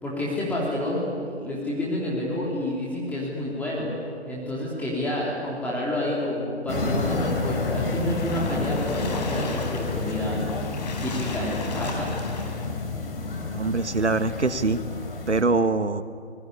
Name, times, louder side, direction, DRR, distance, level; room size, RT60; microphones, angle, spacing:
voice 1, 0.0-3.9 4.3-10.4 10.8-12.1, left 1 dB, 5° left, -5 dB, 3.2 m, -29 dB
sound 1, 6.7-15.4, left 3 dB, 55° left, 4.0 m, -29 dB
Splash splatter, 7.9-12.8, left 4 dB, 40° left, 4.3 m, -37 dB
voice 2, 13.5-14.8 15.3-16.0, right 3 dB, 85° right, 13 dB, 1.5 m, -23 dB
25.0 x 20.5 x 9.9 m, 2.3 s
figure-of-eight pair, 140°, 34 cm